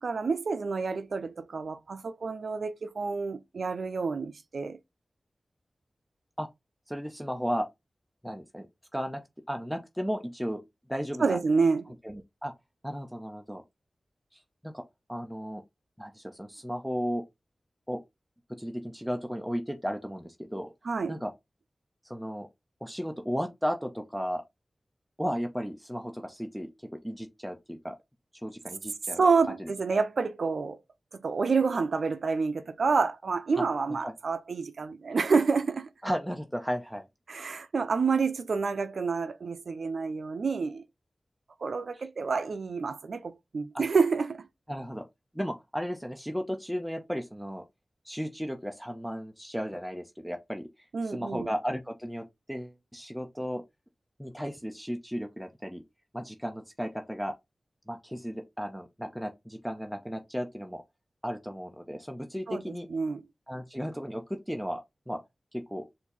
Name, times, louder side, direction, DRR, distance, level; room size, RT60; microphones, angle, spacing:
voice 1, 0.0-4.8 11.2-11.8 20.8-21.2 29.2-30.8 31.1-35.9 37.3-40.8 41.6-44.5 50.9-51.5 62.5-63.2, right 4 dB, 80° right, 0.5 m, -28 dB
voice 2, 6.9-7.7 8.2-8.7 8.9-9.2 9.5-10.6 10.9-11.4 12.0-12.5 12.8-13.6 14.3-14.8 15.1-15.6 16.0-17.2 17.9-18.0 18.5-20.7 21.1-21.3 22.0-22.5 22.8-24.4 25.2-28.0 28.4-29.2 29.6-30.0 33.6-33.7 34.0-34.1 36.0-37.1 41.9-42.0 43.7-43.8 44.7-45.0 45.3-47.6 48.0-53.6 54.2-55.8 56.1-57.3 57.9-60.8 61.2-62.9 63.5-65.2 65.5-65.9, equal, ahead, 0.6 m, -35 dB
4.5 x 2.7 x 4.0 m
wide cardioid pair, 75°, 0 cm